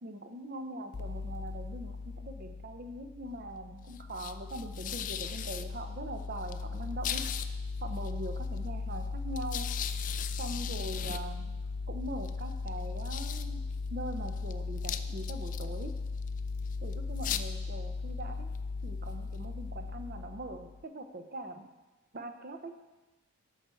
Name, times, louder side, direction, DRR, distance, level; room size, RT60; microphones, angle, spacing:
voice 1, 0.0-7.2 7.8-9.7 10.4-11.6 11.9-13.6 13.9-15.9 16.8-18.5 18.8-21.7 22.1-22.9, right 1 dB, 40° right, 7 dB, 0.7 m, -42 dB
sound 1, 0.9-20.8, left 5 dB, 35° left, 0.3 m, -37 dB
13.0 x 6.3 x 4.5 m, 1.1 s
head